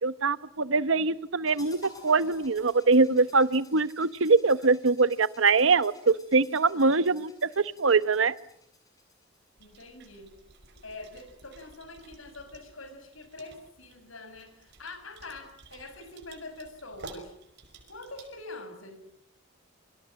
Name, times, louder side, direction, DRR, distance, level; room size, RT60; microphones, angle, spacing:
voice 1, 0.0-1.8 2.0-8.3, right 4 dB, 75° right, 15 dB, 1.0 m, -23 dB
sound 1, 1.5-9.5, left 2 dB, 20° left, 7.6 m, -53 dB
voice 2, 9.6-10.3 10.8-17.3 17.9-19.0, left 2 dB, 85° left, 10 dB, 6.3 m, -44 dB
sound 2, 9.6-18.4, right 3 dB, 60° right, 5.6 m, -52 dB
28.5 x 24.5 x 7.7 m, 0.73 s
head